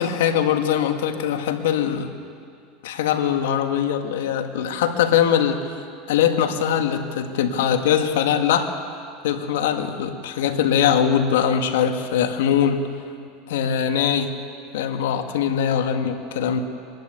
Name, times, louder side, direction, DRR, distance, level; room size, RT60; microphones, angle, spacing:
voice 1, 0.0-2.1 2.8-5.8 6.1-8.7 9.2-12.9 13.5-14.4 14.7-16.6, left 8 dB, 90° left, 5 dB, 1.7 m, -21 dB
25.0 x 11.5 x 9.3 m, 2.3 s
supercardioid pair, 135°, 0 cm